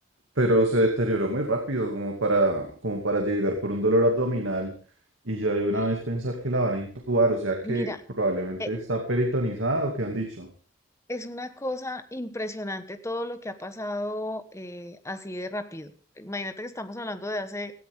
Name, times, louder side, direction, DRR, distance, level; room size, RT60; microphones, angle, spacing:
voice 1, 0.4-4.7 5.3-7.9 8.2-10.5, right 1 dB, 75° right, 2 dB, 2.5 m, -25 dB
voice 2, 7.6-8.0 8.6-8.7 11.1-17.7, left 1 dB, 15° left, 10 dB, 1.2 m, -34 dB
17.5 x 14.0 x 3.7 m, 0.42 s
head